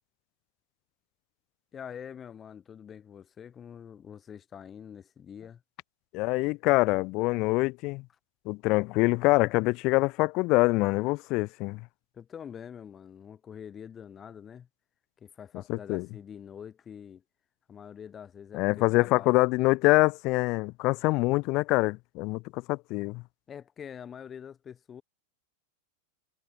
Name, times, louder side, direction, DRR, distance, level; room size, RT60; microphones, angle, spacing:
voice 1, 1.7-5.6 12.1-14.7 15.2-17.2 17.7-19.4 23.5-25.0, left 8 dB, 25° left, 0.9 m, -45 dB
voice 2, 6.1-8.0 8.5-11.8 15.7-16.1 18.5-23.2, left 24 dB, 40° left, 0.3 m, -25 dB
figure-of-eight pair, 90°, 0 cm